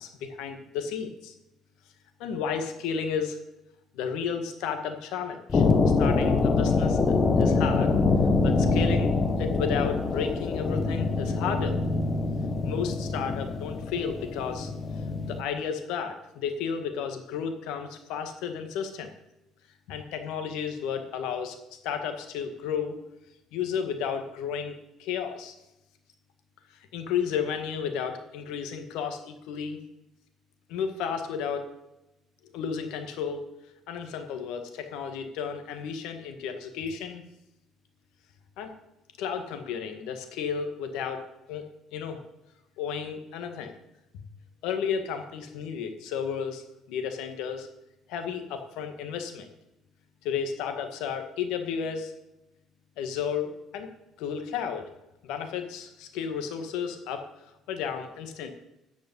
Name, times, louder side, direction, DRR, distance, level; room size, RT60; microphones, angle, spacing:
voice 1, 0.0-1.3 2.2-3.4 3.9-5.6 6.0-7.9 8.4-11.8 12.6-14.7 15.3-19.1 19.9-21.6 21.8-23.0 23.5-25.5 26.9-29.8 30.7-31.7 32.5-33.4 33.9-37.2 38.6-38.7 39.2-42.2 42.8-43.7 44.1-44.2 44.6-47.7 48.1-49.5 50.2-52.1 53.0-53.9 54.2-54.9 55.2-57.3 57.7-58.5, left 7 dB, 80° left, 6 dB, 1.8 m, -33 dB
sound 1, 5.5-15.4, left 3 dB, 30° left, 1.1 m, -25 dB
14.0 x 5.3 x 8.2 m, 0.91 s
cardioid pair, 125°, 0 cm